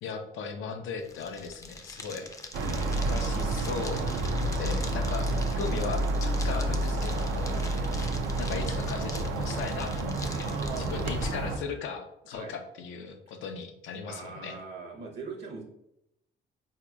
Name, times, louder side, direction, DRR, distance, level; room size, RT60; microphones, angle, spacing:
voice 1, 0.0-2.3 2.7-4.2 4.5-7.5 8.4-14.6, left 5 dB, 85° left, 6 dB, 0.5 m, -38 dB
sound 1, 1.0-11.3, left 2 dB, 15° left, 0.4 m, -44 dB
sound 2, 2.5-11.6, right 2 dB, 85° right, 0.4 m, -29 dB
voice 2, 7.4-7.9 10.4-11.1 12.3-12.5 14.1-15.6, right 4 dB, 60° right, 1 dB, 0.7 m, -41 dB
4.0 x 2.8 x 2.2 m, 0.82 s
cardioid pair, 90°, 20 cm